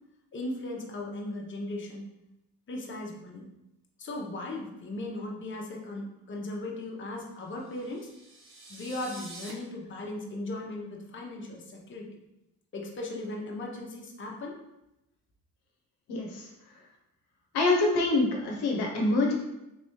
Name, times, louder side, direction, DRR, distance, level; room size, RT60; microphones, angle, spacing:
voice 1, 0.3-2.1 2.7-3.5 4.0-8.1 8.7-12.1 12.7-14.6, left 2 dB, 30° left, -1 dB, 0.8 m, -37 dB
sound 1, 7.6-9.5, right 2 dB, 30° right, 0.9 m, -47 dB
voice 2, 16.1-16.5 17.5-19.3, left 2 dB, 75° left, 0 dB, 0.8 m, -25 dB
3.6 x 3.0 x 3.0 m, 0.90 s
supercardioid pair, 75°, 39 cm